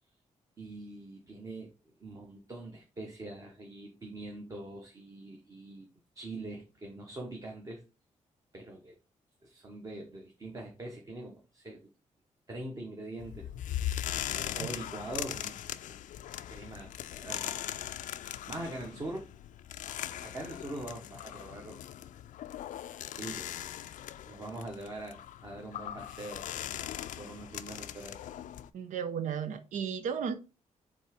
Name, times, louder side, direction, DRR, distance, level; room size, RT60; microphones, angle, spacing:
voice 1, 0.6-1.7 2.0-5.9 6.1-7.8 8.5-9.0 9.4-11.9 12.5-13.5 14.3-15.5 15.9-16.0 16.5-17.7 18.1-19.2 20.2-21.8 23.2-23.9 24.2-26.5 27.1-28.2, right 2 dB, 25° right, 1.1 m, -43 dB
sound 1, 13.2-28.7, left 11 dB, 90° left, 0.4 m, -40 dB
voice 2, 28.7-30.4, right 7 dB, 90° right, 0.8 m, -34 dB
5.3 x 3.7 x 5.0 m
wide cardioid pair, 175°, 13 cm